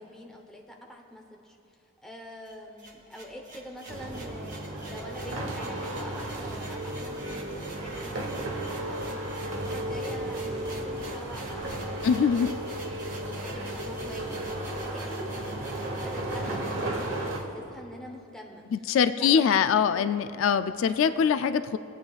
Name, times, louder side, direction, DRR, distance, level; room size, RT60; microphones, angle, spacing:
voice 1, 0.0-9.0 9.5-12.8 13.2-15.5 15.9-18.6 19.0-20.2, equal, 5° left, 0 dB, 0.8 m, -45 dB
sound 1, 2.4-17.4, right 2 dB, 40° right, 1.3 m, -46 dB
sound 2, 3.9-17.4, right 1 dB, 75° right, 1.2 m, -34 dB
voice 2, 12.0-12.5 18.7-21.8, left 7 dB, 70° left, 11 dB, 0.3 m, -23 dB
22.0 x 8.7 x 2.4 m, 2.8 s
head